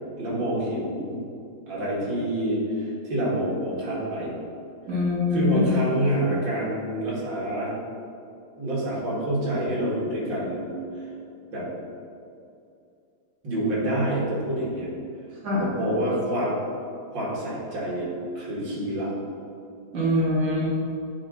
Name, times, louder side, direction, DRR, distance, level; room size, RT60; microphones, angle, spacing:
voice 1, 0.2-1.2 1.7-4.3 5.3-7.7 8.6-10.8 11.5-11.7 13.4-14.9 15.6-16.5 17.1-18.1 18.4-19.1, right 1 dB, 70° right, -6 dB, 2.5 m, -27 dB
voice 2, 4.9-5.6 15.4-15.7 19.9-20.6, left 2 dB, 45° right, -6 dB, 1.8 m, -23 dB
8.6 x 4.2 x 3.9 m, 2.5 s
omnidirectional pair, 2.1 m